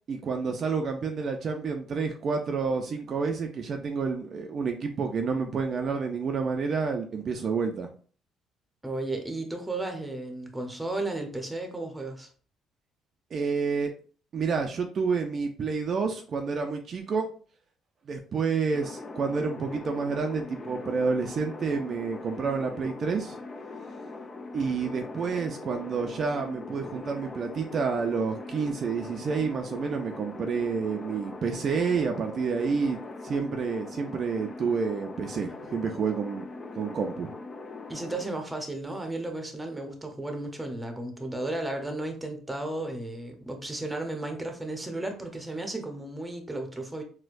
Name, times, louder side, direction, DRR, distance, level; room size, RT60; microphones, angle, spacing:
voice 1, 0.1-7.9 13.3-13.9 14.3-17.3 18.1-23.4 24.5-36.4 36.7-37.3, right 5 dB, 50° right, 3 dB, 0.4 m, -29 dB
voice 2, 8.8-12.3 37.9-47.0, right 2 dB, 10° right, 4 dB, 0.8 m, -34 dB
sound 1, 18.7-38.3, left 3 dB, 35° left, 0.4 m, -41 dB
4.2 x 2.2 x 2.5 m, 0.42 s
cardioid pair, 85°, 0 cm